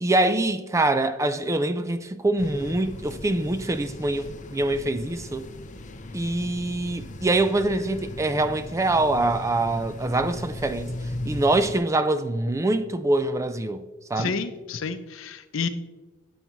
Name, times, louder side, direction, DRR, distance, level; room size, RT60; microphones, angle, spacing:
voice 1, 0.0-5.5 6.1-10.9 11.3-13.8 14.1-14.4, right 2 dB, 15° right, 0.3 m, -24 dB
sound 1, 2.4-11.8, left 1 dB, 40° left, 0.6 m, -37 dB
voice 2, 14.2-15.7, left 5 dB, 75° left, 0.6 m, -30 dB
10.5 x 7.1 x 3.1 m
head